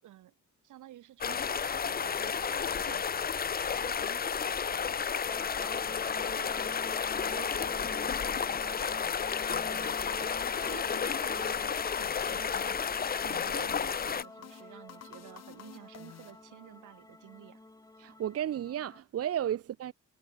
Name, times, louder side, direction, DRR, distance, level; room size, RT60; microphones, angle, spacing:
voice 1, 0.0-0.3 0.6-10.4 10.7-17.6, right 13 dB, 80° right, 4.8 m, -51 dB
sound 1, 1.2-14.2, left 7 dB, 30° left, 0.7 m, -32 dB
sound 2, 5.3-19.0, left 2 dB, 10° left, 1.6 m, -48 dB
sound 3, 9.5-16.9, left 10 dB, 60° left, 1.5 m, -52 dB
voice 2, 18.0-19.9, right 10 dB, 50° right, 0.8 m, -33 dB
cardioid pair, 90°, 30 cm